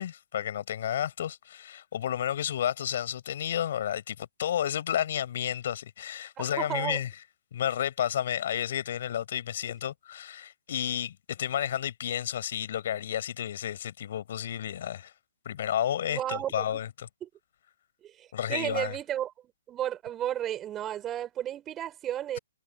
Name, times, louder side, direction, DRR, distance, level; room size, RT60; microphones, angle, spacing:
voice 1, 0.0-7.1 7.5-15.1 15.5-17.1 18.3-19.0, left 10 dB, 55° left, 5.5 m, -31 dB
voice 2, 6.4-7.0 16.1-16.8 17.2-17.3 18.0-19.3 19.7-22.4, right 11 dB, 20° right, 6.0 m, -33 dB
figure-of-eight pair, 130°, 0 cm